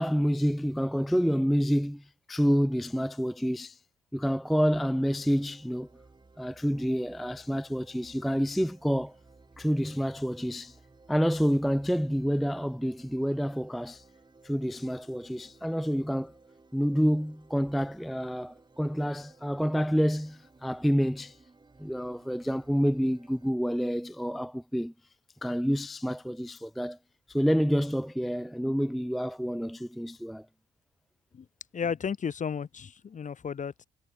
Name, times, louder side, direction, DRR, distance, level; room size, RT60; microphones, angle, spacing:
voice 1, 0.0-3.8 4.1-5.9 6.4-9.1 9.6-10.8 11.1-14.0 14.4-16.3 16.7-21.4 21.8-24.9 25.4-27.0 27.3-30.5, equal, ahead, 0.4 m, -28 dB
sound 1, 4.7-23.5, right 3 dB, 20° right, 7.1 m, -58 dB
voice 2, 31.7-33.8, left 7 dB, 40° left, 1.1 m, -33 dB
cardioid pair, 90°, 20 cm